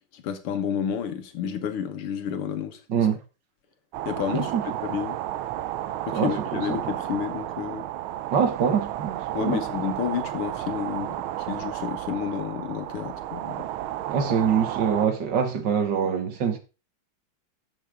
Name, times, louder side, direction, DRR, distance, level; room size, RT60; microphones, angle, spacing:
voice 1, 0.1-2.8 4.1-4.5 4.8-5.2 6.1-7.9 9.3-13.7, left 8 dB, 85° left, 2.2 m, -30 dB
sound 1, 3.9-15.1, right 13 dB, 80° right, 1.5 m, -32 dB
voice 2, 6.1-6.8 8.3-9.6 14.1-16.6, right 7 dB, 55° right, 2.0 m, -24 dB
12.5 x 7.4 x 3.6 m
omnidirectional pair, 2.3 m